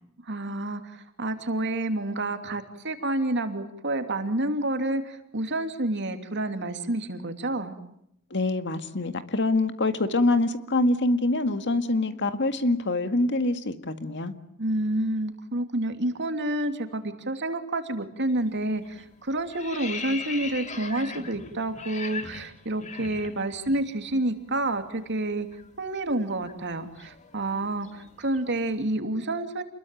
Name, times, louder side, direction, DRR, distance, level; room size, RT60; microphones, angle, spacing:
voice 1, 0.2-7.7 14.6-25.5 25.8-29.6, right 1 dB, 55° right, 7 dB, 2.9 m, -29 dB
voice 2, 8.3-14.3, left 2 dB, 55° left, 9 dB, 2.0 m, -25 dB
sound 1, 18.3-18.6 18.9-23.8 24.1-24.3 24.6-28.6, left 4 dB, 35° left, 2.2 m, -40 dB
29.0 x 21.5 x 9.3 m, 0.76 s
head